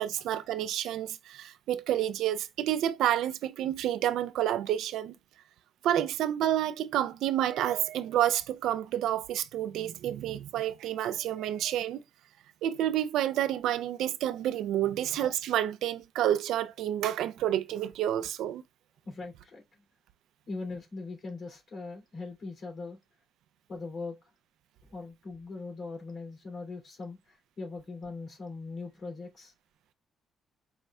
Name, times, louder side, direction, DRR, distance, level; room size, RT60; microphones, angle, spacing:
voice 1, 0.0-5.1 5.8-12.0 12.6-18.6, right 11 dB, 85° right, 0.4 m, -29 dB
voice 2, 19.0-19.6 20.5-23.0 23.7-24.2 24.9-29.5, left 3 dB, 55° left, 2.8 m, -40 dB
5.2 x 2.4 x 3.2 m
cardioid pair, 90°, 0 cm